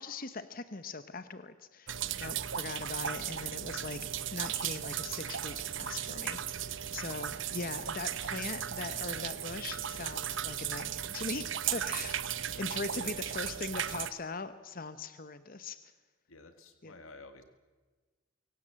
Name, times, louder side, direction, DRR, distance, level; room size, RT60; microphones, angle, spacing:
voice 1, 0.0-12.2 12.5-15.9 16.8-16.9, left 3 dB, 45° left, 12 dB, 0.9 m, -41 dB
sound 1, 1.9-14.1, right 10 dB, 65° right, 0.9 m, -36 dB
voice 2, 16.3-17.4, left 3 dB, 80° left, 7 dB, 1.9 m, -52 dB
23.5 x 17.5 x 7.5 m, 1.4 s
head